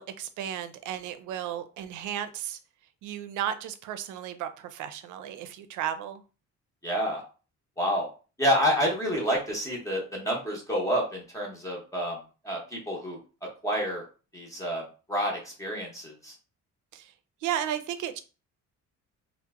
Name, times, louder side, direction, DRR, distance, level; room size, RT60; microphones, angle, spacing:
voice 1, 0.0-2.6 3.0-6.2 16.9-17.1 17.4-18.2, right 10 dB, 85° right, 10 dB, 0.5 m, -34 dB
voice 2, 6.8-7.2 7.8-8.1 8.4-12.2 12.4-13.2 13.6-14.0 14.3-16.3, equal, 10° left, -2 dB, 0.7 m, -28 dB
2.8 x 2.1 x 3.4 m, 0.35 s
cardioid pair, 165°, 29 cm